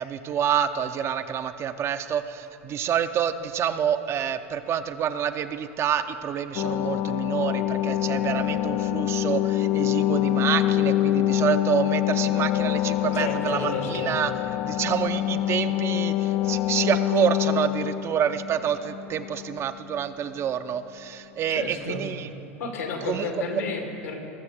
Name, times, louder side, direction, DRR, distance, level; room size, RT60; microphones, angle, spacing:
voice 1, 0.0-14.3 14.6-22.3 23.0-23.3, right 9 dB, 35° right, 10 dB, 0.6 m, -27 dB
sound 1, 6.5-19.6 19.9-20.0, left 13 dB, 50° left, 0.4 m, -25 dB
voice 2, 13.1-14.1 21.5-22.1 22.6-24.2, left 4 dB, 80° left, 2 dB, 2.1 m, -32 dB
19.5 x 7.0 x 5.0 m, 2.7 s
hypercardioid pair, 95°, 7 cm